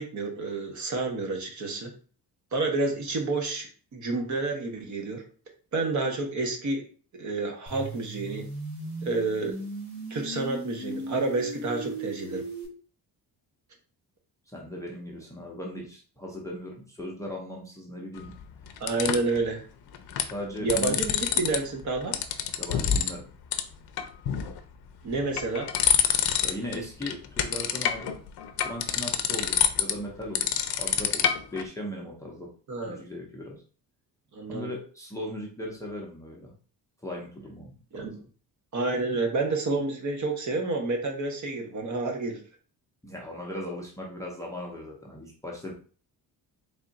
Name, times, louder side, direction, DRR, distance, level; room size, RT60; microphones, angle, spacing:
voice 1, 0.0-1.9 2.5-3.7 3.9-5.2 5.7-6.9 7.2-8.4 9.0-9.5 10.1-12.4 18.8-19.6 20.6-22.2 25.0-25.7 32.7-33.0 34.3-34.7 37.9-38.1 38.7-42.4, right 3 dB, 45° right, 3 dB, 0.9 m, -29 dB
sound 1, 7.7-12.7, right 1 dB, 65° right, 1.9 m, -37 dB
voice 2, 14.5-18.4 20.3-21.0 22.6-23.3 26.4-28.2 28.6-32.5 32.8-33.6 34.5-36.5 37.0-38.2 43.0-45.7, left 1 dB, 10° left, -2 dB, 0.5 m, -38 dB
sound 2, 18.2-19.4 19.9-20.3 20.6-21.6 21.8-23.2 23.5-23.6 24.0-24.6 25.1-26.8 27.0-31.7, left 9 dB, 70° left, 0.5 m, -26 dB
3.5 x 2.4 x 3.9 m, 0.40 s
cardioid pair, 170°, 39 cm